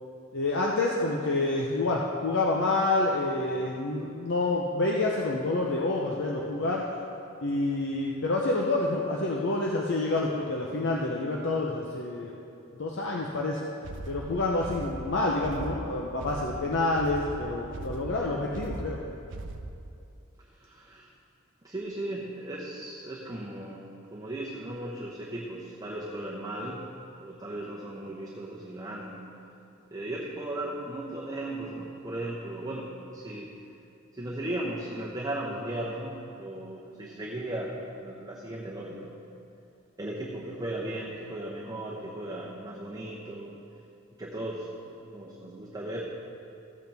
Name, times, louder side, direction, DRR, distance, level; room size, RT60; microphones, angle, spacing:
voice 1, 0.3-6.8 7.4-12.4 12.8-13.6 14.1-19.0, left 2 dB, 60° left, -2 dB, 0.7 m, -28 dB
sound 1, 13.8-19.9, right 2 dB, 60° right, 0.6 m, -39 dB
voice 2, 20.4-21.1 21.6-29.3 29.9-33.5 34.1-39.1 40.0-43.5 44.2-46.0, right 1 dB, 20° right, -4 dB, 0.9 m, -36 dB
14.5 x 8.1 x 3.5 m, 2.7 s
head